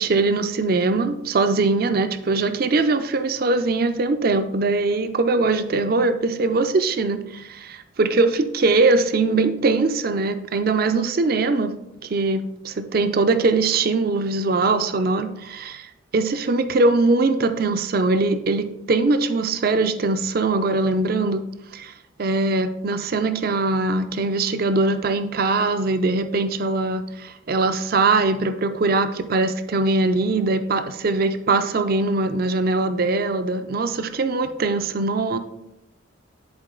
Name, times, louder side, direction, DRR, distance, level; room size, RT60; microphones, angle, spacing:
voice 1, 0.0-11.7 12.1-15.9 16.1-21.4 21.7-21.9 22.2-35.4, right 3 dB, 45° right, 9 dB, 0.4 m, -21 dB
10.5 x 4.5 x 3.8 m, 0.87 s
head